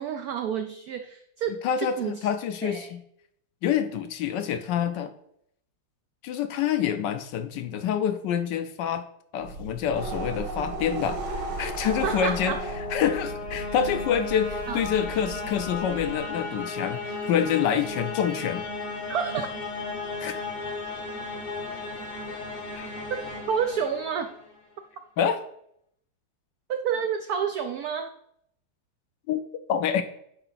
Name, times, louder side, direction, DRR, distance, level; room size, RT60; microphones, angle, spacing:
voice 1, 0.0-2.3 2.6-2.9 12.0-12.6 14.7-14.8 19.1-19.5 23.5-24.3 26.7-28.1, right 7 dB, 90° right, 7 dB, 0.8 m, -29 dB
voice 2, 1.6-3.0 3.6-5.1 6.2-9.0 9.3-12.6 12.9-18.6 20.2-20.4 22.7-22.9 25.2-25.4 29.3-29.4 29.7-30.0, left 8 dB, 75° left, 9 dB, 1.1 m, -27 dB
sound 1, 9.4-16.3, right 2 dB, 65° right, 1.8 m, -36 dB
sound 2, 11.6-24.6, left 3 dB, 40° left, 0.6 m, -35 dB
10.0 x 4.2 x 4.0 m, 0.72 s
omnidirectional pair, 2.2 m